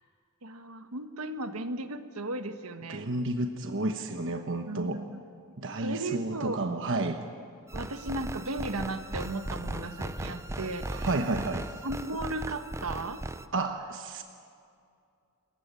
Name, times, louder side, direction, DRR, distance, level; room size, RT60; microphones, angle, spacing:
voice 1, 0.4-3.1 4.6-5.2 5.8-6.6 7.7-11.4 11.8-13.2, right 2 dB, 80° right, 8 dB, 1.4 m, -36 dB
voice 2, 2.9-5.0 5.6-7.2 10.9-11.6 13.5-14.2, right 2 dB, 60° right, 6 dB, 1.2 m, -31 dB
sound 1, 7.7-13.4, right 1 dB, 15° right, 0.6 m, -37 dB
27.5 x 15.0 x 9.0 m, 2.4 s
head